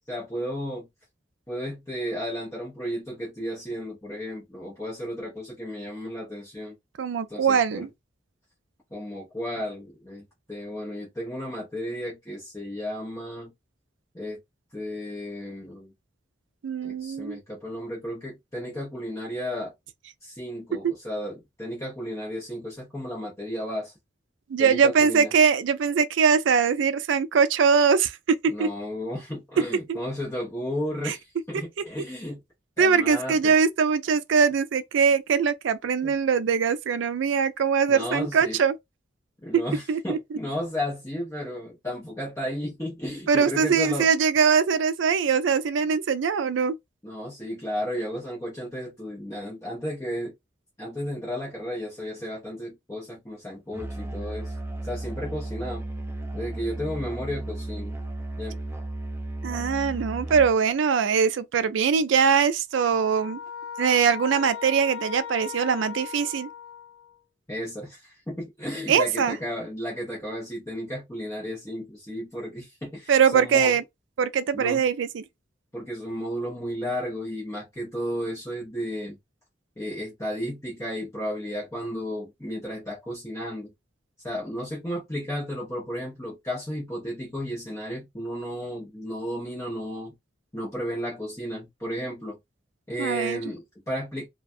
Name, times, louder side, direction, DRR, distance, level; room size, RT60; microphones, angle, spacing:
voice 1, 0.1-0.9 1.5-6.7 7.3-7.9 8.9-10.2 10.5-13.5 14.1-14.4 14.7-15.9 16.8-19.7 20.2-23.9 24.6-25.3 28.5-32.4 32.8-33.5 36.0-36.1 37.9-38.6 39.4-44.1 47.0-50.3 50.8-54.5 54.8-55.8 56.3-57.9 58.4-58.6 67.5-73.8 74.5-74.8 75.7-79.2 79.8-83.7 84.2-90.1 90.5-92.4 92.9-94.3, equal, 15° left, 0.8 m, -33 dB
voice 2, 7.0-7.9 16.6-17.4 24.5-28.1 28.6-28.7 29.9-30.0 31.0-31.1 32.8-38.8 39.9-40.2 43.3-46.8 59.4-63.4 63.8-66.5 68.9-69.4 73.1-73.8 74.2-75.2 93.0-93.4, right 6 dB, 80° right, 0.4 m, -22 dB
Musical instrument, 53.7-60.6, right 2 dB, 15° right, 0.4 m, -34 dB
sound 1, 62.7-67.2, left 7 dB, 70° left, 0.9 m, -38 dB
2.3 x 2.2 x 2.6 m
head